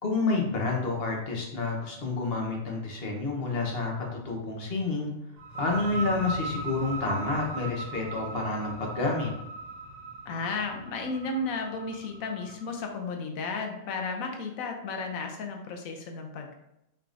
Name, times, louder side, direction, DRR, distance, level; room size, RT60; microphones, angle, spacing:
voice 1, 0.0-5.1 5.5-9.3, left 3 dB, 50° left, 0 dB, 1.2 m, -29 dB
sound 1, 5.4-12.9, right 2 dB, 70° right, 1.2 m, -38 dB
voice 2, 10.3-16.5, left 3 dB, 90° left, 4 dB, 1.1 m, -33 dB
5.7 x 3.6 x 2.5 m, 0.85 s
omnidirectional pair, 1.4 m